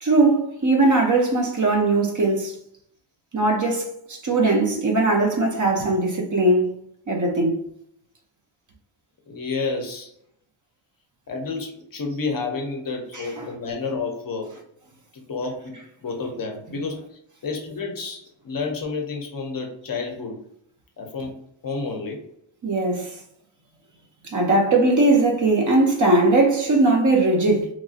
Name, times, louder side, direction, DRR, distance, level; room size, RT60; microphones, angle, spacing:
voice 1, 0.0-2.5 3.3-6.7 7.1-7.6 13.1-13.5 22.6-23.1 24.3-27.7, right 2 dB, 40° right, 0.5 m, -20 dB
voice 2, 9.3-10.1 11.3-14.5 15.1-20.4 21.0-22.3, left 4 dB, 45° left, 0.6 m, -30 dB
2.9 x 2.5 x 2.4 m
wide cardioid pair, 175°, 48 cm